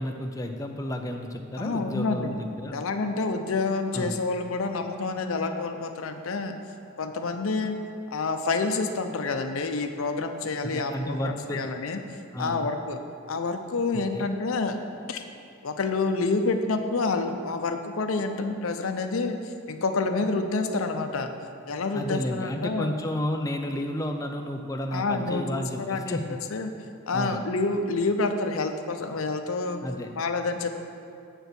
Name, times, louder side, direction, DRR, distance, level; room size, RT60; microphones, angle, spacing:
voice 1, 0.0-2.8 3.9-4.1 10.6-11.6 12.3-12.7 14.1-14.3 21.9-26.4 27.1-27.4 29.8-30.1, left 1 dB, 15° left, 4 dB, 0.4 m, -32 dB
voice 2, 1.6-2.4 2.7-6.5 7.0-7.8 8.1-12.0 12.4-13.0 13.3-14.8 15.1-15.2 15.6-21.3 21.7-22.9 24.9-26.7 27.1-29.8 30.2-30.7, left 3 dB, 75° left, 6 dB, 0.6 m, -28 dB
7.9 x 4.5 x 6.8 m, 2.4 s
head